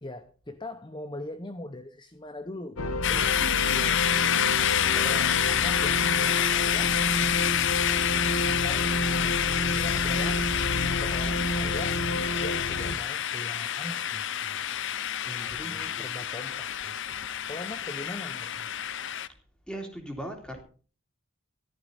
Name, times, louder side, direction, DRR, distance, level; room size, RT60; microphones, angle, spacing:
voice 1, 0.0-4.1 4.8-7.1 8.4-9.0 9.3-10.5 10.9-12.0 12.4-14.6 15.5-17.0 17.5-18.8, left 2 dB, 20° left, 0.7 m, -41 dB
sound 1, 2.8-12.9, left 1 dB, 90° left, 1.4 m, -30 dB
sound 2, 3.0-19.3, left 10 dB, 55° left, 0.7 m, -28 dB
voice 2, 15.2-16.3 19.7-20.6, right 1 dB, 5° left, 3.3 m, -40 dB
15.0 x 12.5 x 4.1 m
head